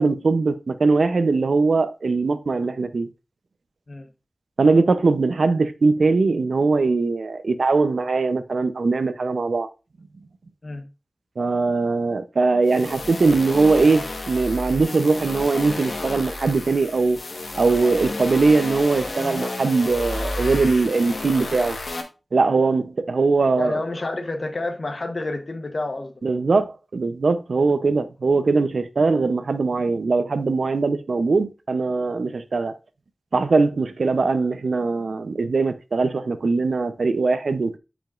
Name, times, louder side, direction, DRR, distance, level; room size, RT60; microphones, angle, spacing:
voice 1, 0.0-3.1 4.6-9.7 11.4-17.2 17.6-21.8 22.3-23.8 26.2-32.8 33.3-37.8, right 3 dB, 90° right, 0.6 m, -21 dB
sound 1, 12.6-22.0, left 2 dB, 80° left, 1.3 m, -31 dB
voice 2, 23.6-26.2, left 2 dB, 55° left, 1.0 m, -29 dB
10.5 x 5.1 x 2.5 m
wide cardioid pair, 65°, 0 cm